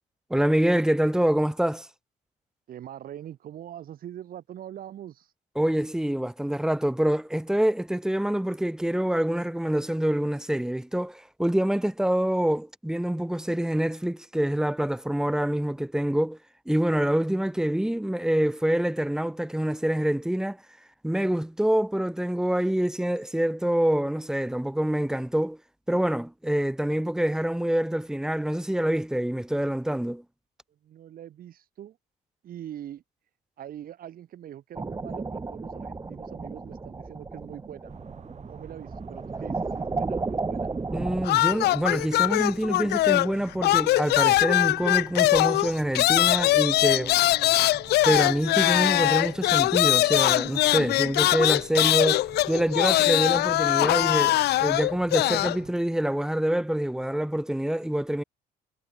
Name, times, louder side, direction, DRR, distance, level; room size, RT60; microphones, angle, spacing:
voice 1, 0.3-1.9 5.6-16.4 16.7-20.6 21.0-25.6 25.9-30.2 40.9-47.1 48.0-58.2, right 1 dB, 5° right, 1.3 m, -26 dB
voice 2, 2.7-5.3 30.7-32.0 32.4-33.0 33.6-37.9 38.3-40.7 46.8-47.6, right 11 dB, 60° right, 6.5 m, -43 dB
sound 1, 34.7-41.3, right 3 dB, 20° right, 2.7 m, -33 dB
sound 2, 37.9-55.7, right 7 dB, 45° right, 5.9 m, -47 dB
sound 3, 41.2-43.4 43.6-55.6, left 16 dB, 75° left, 1.8 m, -22 dB
cardioid pair, 110°, 17 cm